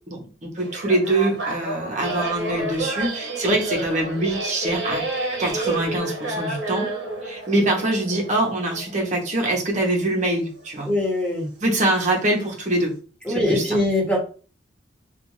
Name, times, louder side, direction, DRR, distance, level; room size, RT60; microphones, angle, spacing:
voice 1, 0.1-5.0 5.4-6.9 7.2-10.9 11.6-12.9 13.3-13.8, right 1 dB, 45° right, 0 dB, 0.8 m, -24 dB
sound 1, 0.6-9.9 10.6-10.7 11.7-12.0 12.4-12.6, right 2 dB, 75° right, 0.8 m, -30 dB
voice 2, 10.8-11.5 13.3-14.2, left 1 dB, 5° left, -5 dB, 1.1 m, -22 dB
2.4 x 2.3 x 3.1 m, 0.37 s
head